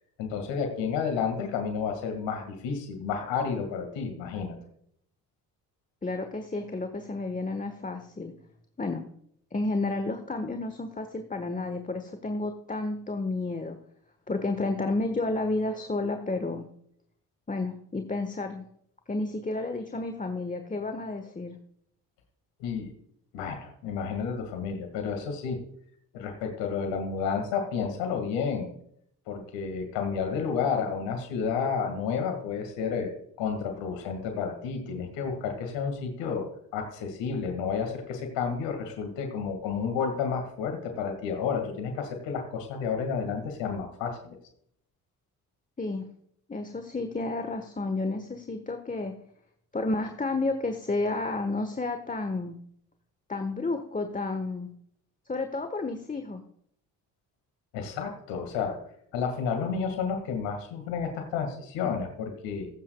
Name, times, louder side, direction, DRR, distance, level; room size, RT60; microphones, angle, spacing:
voice 1, 0.2-4.6 22.6-22.9 23.3-25.6 26.1-28.7 29.3-33.1 33.4-44.4 57.7-58.8 59.1-62.7, left 6 dB, 80° left, 5 dB, 2.0 m, -31 dB
voice 2, 6.0-8.3 8.8-9.0 9.5-13.8 14.3-16.7 17.5-18.7 19.1-21.6 45.8-46.0 46.5-49.1 49.7-52.6 53.3-54.7 55.3-56.4, left 2 dB, 20° left, 7 dB, 1.3 m, -31 dB
17.5 x 9.1 x 2.3 m, 0.68 s
hypercardioid pair, 55°, 44 cm